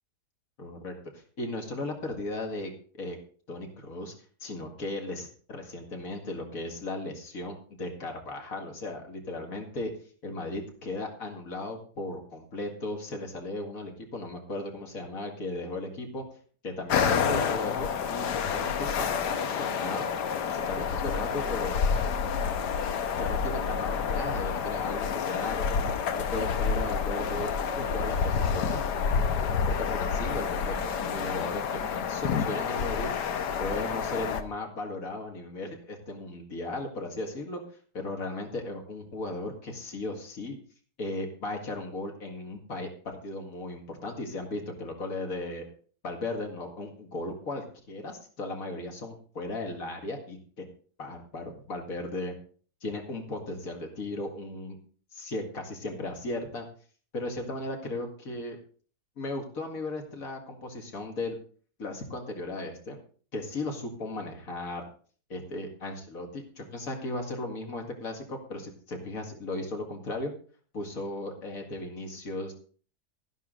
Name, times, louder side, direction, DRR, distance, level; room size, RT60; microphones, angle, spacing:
voice 1, 0.6-2.7 3.0-3.2 3.5-4.1 4.4-9.9 10.2-16.2 16.6-20.1 20.5-21.8 23.2-25.8 26.1-28.8 29.7-37.6 37.9-40.6 41.0-45.6 46.0-50.6 51.0-52.3 52.8-54.8 55.1-56.7 57.1-58.6 59.2-61.4 61.8-63.0 63.3-64.9 65.3-70.3 70.7-72.5, left 2 dB, 55° left, 3 dB, 2.5 m, -36 dB
sound 1, 16.9-34.4, left 6 dB, 80° left, 1.5 m, -29 dB
12.5 x 11.0 x 3.9 m, 0.43 s
omnidirectional pair, 1.8 m